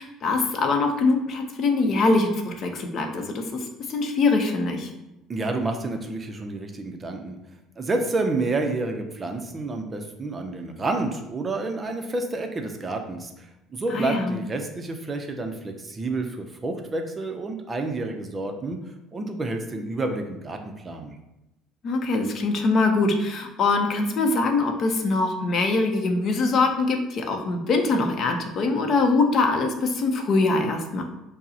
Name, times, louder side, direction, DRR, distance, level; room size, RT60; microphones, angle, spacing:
voice 1, 0.0-4.9 13.9-14.4 21.8-31.0, left 3 dB, 50° left, 4 dB, 0.6 m, -23 dB
voice 2, 5.3-7.4 7.8-18.8 19.1-21.2, right 2 dB, 25° right, 5 dB, 0.5 m, -29 dB
5.3 x 2.0 x 2.7 m, 0.94 s
supercardioid pair, 100°, 0 cm